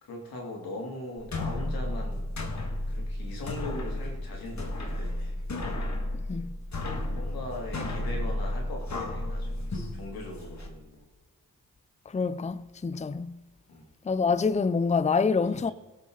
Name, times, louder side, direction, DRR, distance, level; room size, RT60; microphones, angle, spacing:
voice 1, 0.0-2.3 2.9-5.4 7.1-11.1 13.7-13.8 15.5-15.7, left 1 dB, 85° left, 3.0 m, -40 dB
sound 1, 1.2-10.7, left 1 dB, 50° left, 2.1 m, -33 dB
voice 2, 12.1-13.4 14.0-15.7, left 5 dB, 20° left, 0.5 m, -26 dB
17.0 x 7.7 x 4.0 m
cardioid pair, 45°, 35 cm